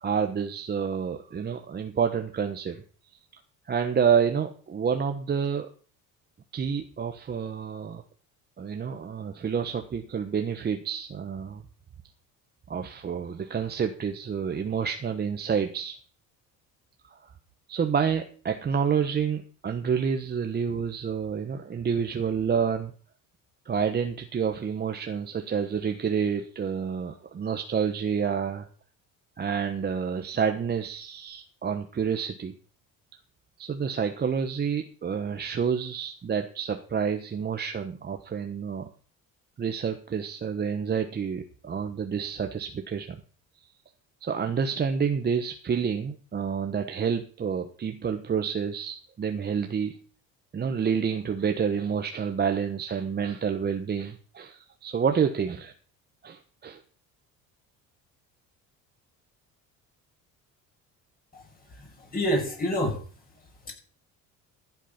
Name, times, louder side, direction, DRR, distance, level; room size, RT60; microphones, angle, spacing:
voice 1, 0.0-2.8 3.7-5.7 6.5-8.0 8.6-11.6 12.7-16.0 17.1-17.2 17.7-22.9 23.6-28.7 29.4-32.5 33.6-38.9 39.6-43.2 44.2-50.0 50.5-55.7 56.2-56.8, right 7 dB, 30° right, 6 dB, 1.2 m, -28 dB
voice 2, 61.3-63.0 63.6-63.7, equal, 25° left, 0 dB, 6.5 m, -29 dB
14.5 x 8.5 x 5.9 m, 0.41 s
cardioid pair, 120°, 33 cm